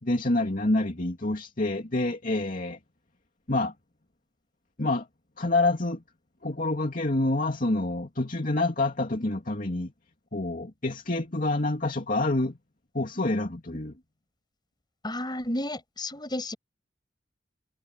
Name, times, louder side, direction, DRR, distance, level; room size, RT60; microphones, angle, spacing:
voice 1, 0.0-2.8 3.5-3.7 4.8-5.1 5.4-6.0 6.4-9.9 10.3-12.6 12.9-13.9, left 2 dB, 50° left, 2.7 m, -27 dB
voice 2, 15.0-16.6, left 1 dB, 25° left, 7.4 m, -32 dB
head